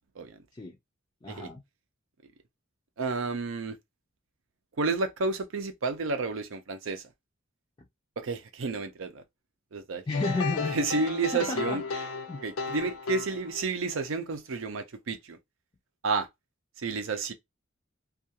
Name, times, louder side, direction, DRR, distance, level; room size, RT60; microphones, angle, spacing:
voice 1, 1.2-1.6 10.1-11.0 11.3-12.4, left 2 dB, 20° left, 0.4 m, -33 dB
voice 2, 3.0-3.8 4.8-7.0 8.2-9.2 9.7-10.0 10.7-11.8 12.4-15.4 16.0-16.3 16.8-17.3, right 3 dB, 70° right, 0.6 m, -31 dB
sound 1, 10.1-13.9, left 4 dB, 90° left, 0.4 m, -35 dB
2.4 x 2.3 x 2.7 m
head